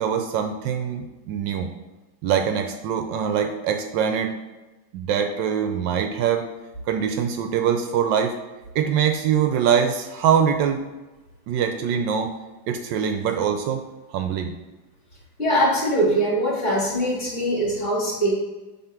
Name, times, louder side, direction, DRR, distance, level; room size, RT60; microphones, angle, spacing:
voice 1, 0.0-1.7 2.2-4.3 4.9-6.5 6.9-8.3 8.7-10.8 11.5-12.3 12.7-13.8 14.1-14.5, right 8 dB, 75° right, 6 dB, 1.2 m, -23 dB
voice 2, 15.4-18.3, equal, 40° left, -6 dB, 3.0 m, -22 dB
7.7 x 3.6 x 5.8 m, 1.1 s
omnidirectional pair, 2.1 m